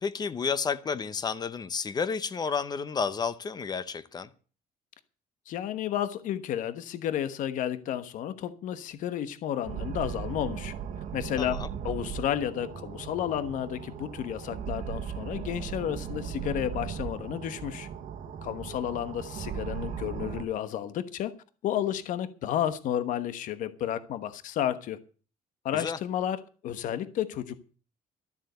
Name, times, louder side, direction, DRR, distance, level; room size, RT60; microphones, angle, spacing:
voice 1, 0.0-4.3 11.4-11.7 25.7-26.0, left 5 dB, 25° left, 0.9 m, -31 dB
voice 2, 5.5-10.7 11.1-17.9 18.4-21.3 21.6-25.0 25.6-27.5, left 10 dB, 65° left, 1.2 m, -32 dB
sound 1, 9.6-20.4, right 8 dB, 60° right, 1.4 m, -37 dB
13.0 x 7.4 x 8.0 m
cardioid pair, 145°, 15 cm